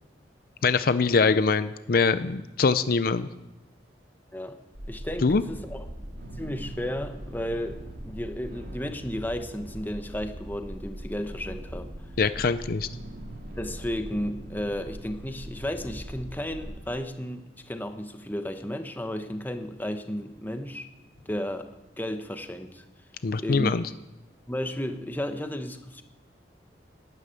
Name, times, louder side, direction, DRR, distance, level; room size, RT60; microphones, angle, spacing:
voice 1, 0.6-3.3 5.2-5.4 12.2-12.9 23.2-23.8, left 4 dB, 55° left, 13 dB, 0.5 m, -23 dB
sound 1, 4.7-16.7, right 1 dB, 55° right, 2.4 m, -41 dB
voice 2, 4.9-5.9 6.4-11.9 13.6-20.9 21.3-21.7 22.0-22.8 23.4-23.7 24.5-26.0, equal, 10° left, 8 dB, 1.0 m, -33 dB
12.5 x 9.9 x 9.0 m, 0.99 s
head